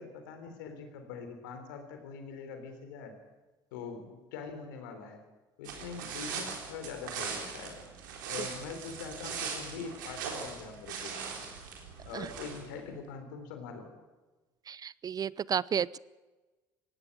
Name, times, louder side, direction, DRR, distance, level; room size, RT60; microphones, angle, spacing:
voice 1, 0.0-3.1 3.7-5.2 5.6-7.8 8.3-11.5 12.0-13.9, left 5 dB, 85° left, 6 dB, 3.6 m, -43 dB
sound 1, 5.6-12.8, right 6 dB, 85° right, 3.8 m, -40 dB
voice 2, 14.7-16.0, right 8 dB, 40° right, 23 dB, 0.5 m, -32 dB
18.5 x 16.0 x 8.9 m, 1.2 s
hypercardioid pair, 65°, 10 cm